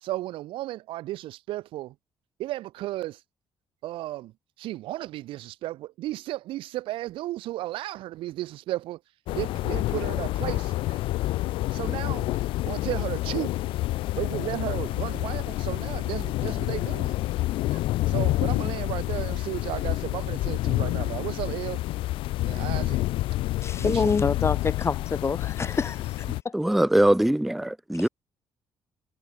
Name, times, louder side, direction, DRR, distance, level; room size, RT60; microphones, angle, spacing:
voice 1, 0.0-1.9 2.4-3.2 3.8-9.0 9.3-11.0 11.7-12.4 12.7-13.5 14.1-17.3 17.7-21.8 22.4-23.0 23.8-24.1, right 16 dB, 85° right, 1.2 m, -34 dB
sound 1, 9.3-26.4, left 17 dB, 90° left, 0.8 m, -28 dB
voice 2, 23.6-26.1 26.4-26.5 28.0-28.1, left 5 dB, 30° left, 1.4 m, -26 dB
voice 3, 26.5-28.1, right 1 dB, ahead, 0.4 m, -22 dB
cardioid pair, 95°, 9 cm